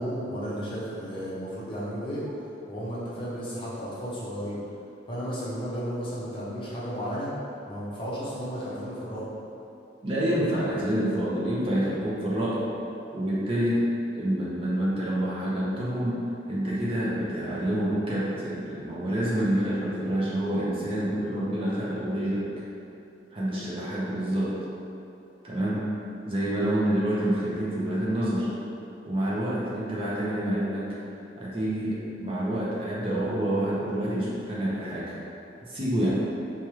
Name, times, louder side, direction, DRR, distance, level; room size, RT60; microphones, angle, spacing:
voice 1, 0.0-2.2 2.7-4.6 5.1-7.3 7.7-9.2 26.7-26.8, equal, 25° left, -8 dB, 0.7 m, -33 dB
voice 2, 10.0-12.7 13.1-13.8 14.1-16.2 16.5-22.5 23.3-24.6 25.4-25.8 26.3-28.5 29.1-31.0 31.4-35.2 35.7-36.1, right 1 dB, 30° right, -7 dB, 0.6 m, -27 dB
4.4 x 2.4 x 3.0 m, 2.7 s
head